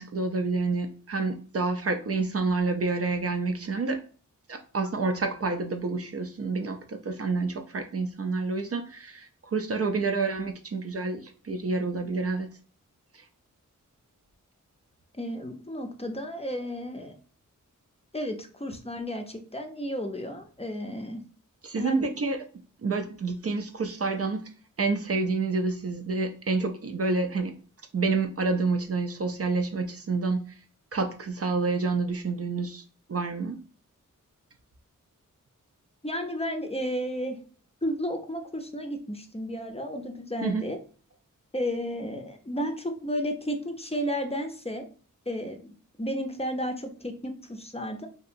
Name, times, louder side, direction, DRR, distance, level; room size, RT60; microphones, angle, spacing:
voice 1, 0.0-4.0 4.5-12.5 13.1-13.3 21.6-22.5 22.8-24.5 24.8-27.6 27.9-30.6 30.9-32.8 33.1-33.6 40.4-40.6, right 3 dB, 45° right, 6 dB, 0.4 m, -28 dB
voice 2, 15.2-17.1 18.1-21.2 21.8-22.0 36.0-37.4 37.8-40.8 41.5-44.8 45.3-45.7 46.0-48.1, equal, 20° left, 4 dB, 0.5 m, -32 dB
2.8 x 2.6 x 2.5 m, 0.40 s
cardioid pair, 40°, 33 cm